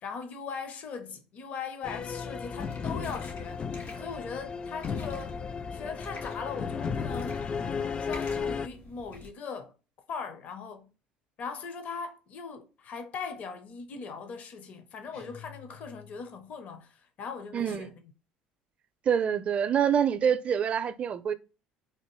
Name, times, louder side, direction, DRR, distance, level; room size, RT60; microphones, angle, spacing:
voice 1, 0.0-7.4 7.7-9.7 10.1-10.9 11.4-18.1, left 5 dB, 50° left, 0.7 m, -40 dB
sound 1, 1.8-8.7, left 5 dB, 30° left, 0.3 m, -34 dB
sound 2, 2.6-9.3, left 2 dB, 70° left, 2.0 m, -48 dB
sound 3, 15.1-16.5, left 8 dB, 85° left, 1.7 m, -50 dB
voice 2, 17.5-17.9 19.1-21.3, right 8 dB, 45° right, 0.4 m, -26 dB
3.5 x 2.6 x 3.0 m
supercardioid pair, 85°, 3 cm